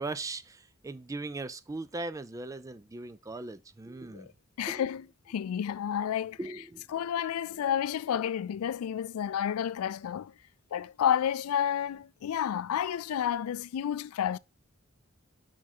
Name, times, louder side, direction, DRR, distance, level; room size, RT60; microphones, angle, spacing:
voice 1, 0.0-4.3 4.7-4.9 6.4-6.9, right 2 dB, 15° right, 0.3 m, -39 dB
voice 2, 4.6-6.4 6.9-10.3 10.7-14.4, left 9 dB, 90° left, 0.3 m, -30 dB
5.9 x 4.7 x 4.3 m
head